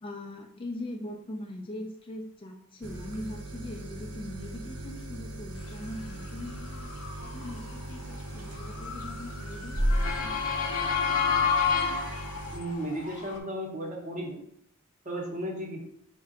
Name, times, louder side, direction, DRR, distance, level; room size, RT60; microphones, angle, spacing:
voice 1, 0.0-6.9 7.2-10.3, left 1 dB, 25° left, 2 dB, 0.3 m, -41 dB
sound 1, 2.8-12.6, equal, 80° right, 0.6 m, -36 dB
Motor vehicle (road) / Siren, 6.1-13.4, left 6 dB, 70° left, 0.6 m, -31 dB
voice 2, 12.5-14.4 15.0-15.8, right 1 dB, 35° right, 0 dB, 0.7 m, -34 dB
4.5 x 2.1 x 3.7 m, 0.71 s
head